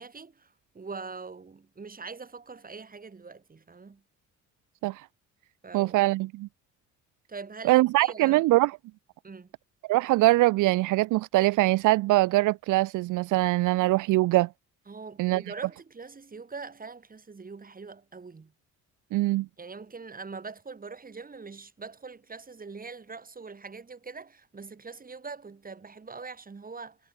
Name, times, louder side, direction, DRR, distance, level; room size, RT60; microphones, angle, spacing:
voice 1, 0.0-4.0 5.6-6.0 7.3-8.4 9.2-9.5 14.9-18.5 19.6-27.0, right 4 dB, 30° right, 3.8 m, -43 dB
voice 2, 5.7-6.5 7.6-8.8 9.9-14.5 15.2-15.4 19.1-19.5, right 19 dB, 85° right, 0.6 m, -23 dB
cardioid pair, 90°, 30 cm